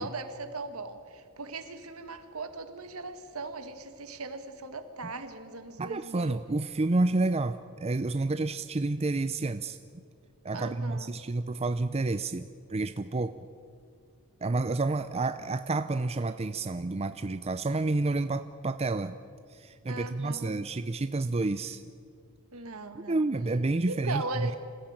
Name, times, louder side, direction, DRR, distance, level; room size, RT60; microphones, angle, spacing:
voice 1, 0.0-6.4 10.5-11.1 19.9-20.6 22.5-23.3 23.9-24.6, right 3 dB, 70° right, 8 dB, 1.9 m, -39 dB
voice 2, 5.8-9.8 10.4-12.4 12.7-13.3 14.4-19.1 19.5-21.8 22.9-24.6, right 2 dB, 30° right, 11 dB, 0.5 m, -29 dB
26.0 x 15.5 x 8.9 m, 2.3 s
head